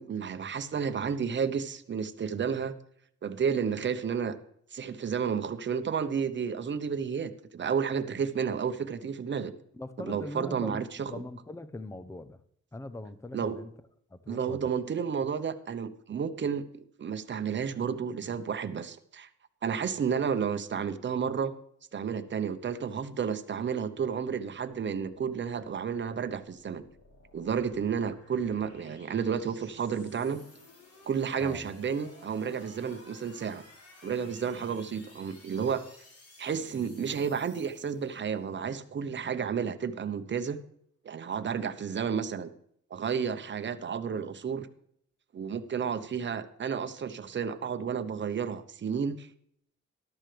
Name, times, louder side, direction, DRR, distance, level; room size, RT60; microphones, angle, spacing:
voice 1, 0.0-2.7 3.2-4.4 4.7-9.5 10.0-11.1 13.3-13.6 14.3-19.3 19.6-21.5 21.9-26.8 27.3-30.4 31.1-33.6 34.0-35.8 36.4-40.6 41.0-42.5 42.9-44.7 45.3-49.3, right 6 dB, 40° right, 10 dB, 1.0 m, -31 dB
voice 2, 9.7-12.4 12.7-13.7 14.1-14.7 31.4-31.7, left 2 dB, 10° left, 13 dB, 0.7 m, -41 dB
sound 1, 25.1-38.6, left 2 dB, 50° left, 3.5 m, -56 dB
13.5 x 12.0 x 3.4 m, 0.68 s
cardioid pair, 90°, 30 cm